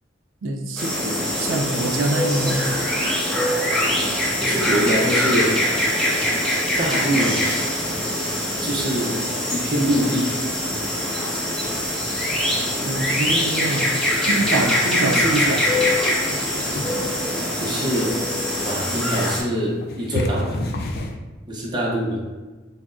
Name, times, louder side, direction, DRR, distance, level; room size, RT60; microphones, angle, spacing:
voice 1, 0.4-2.7 12.8-14.0 14.3-15.7, right 2 dB, 90° right, 3 dB, 0.4 m, -25 dB
sound 1, 0.8-19.4, left 1 dB, ahead, 0.9 m, -23 dB
voice 2, 4.4-5.6 6.8-7.4 8.6-9.2 9.5-10.3 17.6-18.2 18.6-20.6 21.5-22.2, equal, 25° right, -3 dB, 0.6 m, -23 dB
sound 2, 14.9-21.1, left 1 dB, 50° left, 0.4 m, -32 dB
5.7 x 2.1 x 2.5 m, 1.2 s
head